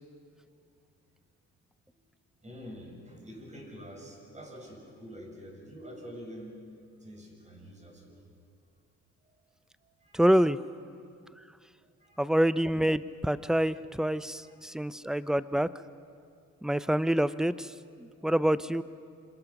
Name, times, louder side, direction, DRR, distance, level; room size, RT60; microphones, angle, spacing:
voice 1, 2.4-6.6 7.0-8.2 9.8-10.2 11.8-12.2 14.4-14.6 18.2-18.5, equal, 25° right, 0 dB, 7.2 m, -47 dB
voice 2, 10.1-10.6 12.2-15.7 16.6-17.7 18.0-18.8, right 1 dB, ahead, 15 dB, 0.6 m, -26 dB
27.0 x 25.5 x 6.0 m, 2.3 s
cardioid pair, 90°, 30 cm